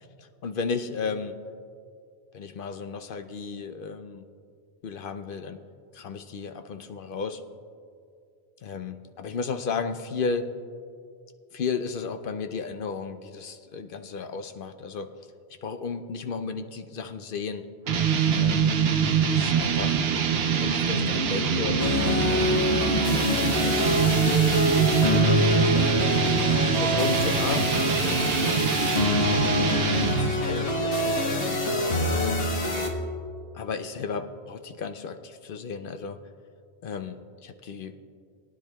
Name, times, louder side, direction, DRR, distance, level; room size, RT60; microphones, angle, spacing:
voice 1, 0.2-1.3 2.3-4.3 4.8-5.6 5.9-7.4 8.6-10.5 11.5-15.1 15.6-17.7 18.3-18.7 19.3-20.0 20.6-24.5 25.1-28.6 29.2-29.5 30.0-32.4 33.5-36.2 36.8-37.2 37.4-38.0, left 5 dB, 60° left, 8 dB, 0.7 m, -34 dB
sound 1, 17.9-30.4, right 6 dB, 65° right, 0.9 m, -24 dB
sound 2, 19.7-26.2, left 9 dB, 35° left, 1.9 m, -45 dB
sound 3, 21.8-32.9, left 2 dB, 85° left, 1.6 m, -25 dB
20.5 x 10.0 x 2.2 m, 2.3 s
omnidirectional pair, 1.1 m